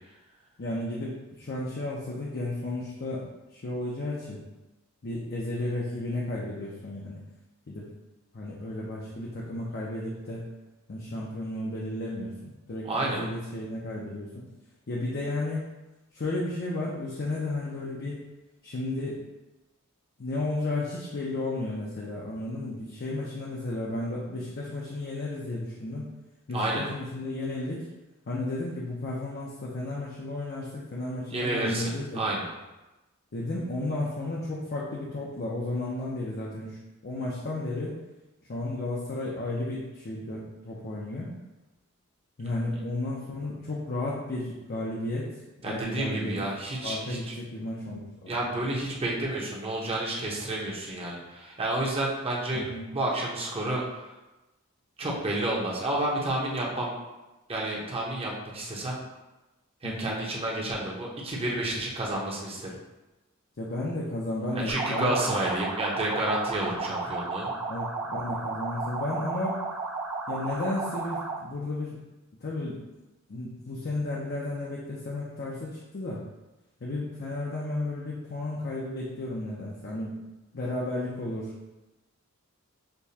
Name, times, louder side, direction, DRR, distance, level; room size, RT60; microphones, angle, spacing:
voice 1, 0.6-4.4 5.0-7.2 7.7-7.9 8.3-10.5 10.9-14.4 14.9-15.6 16.1-18.2 18.6-19.2 20.2-26.1 26.5-27.9 28.3-32.2 33.3-38.0 38.5-41.3 42.4-45.3 45.6-46.5 46.8-48.4 52.5-52.9 59.8-60.1 63.6-65.6 66.7-66.9 67.7-69.6 70.3-72.0 72.4-72.8 73.3-76.2 76.8-80.1 80.5-81.5, left 2 dB, 50° left, -5 dB, 0.6 m, -33 dB
voice 2, 12.8-13.2 26.5-26.9 31.3-32.5 45.6-47.3 48.3-52.6 52.9-53.8 55.0-56.9 57.5-59.0 59.8-62.7 64.5-67.5, right 1 dB, 25° right, -3 dB, 0.8 m, -30 dB
sound 1, 64.7-71.5, right 3 dB, 85° right, 0.8 m, -33 dB
6.6 x 2.3 x 2.8 m, 1.0 s
head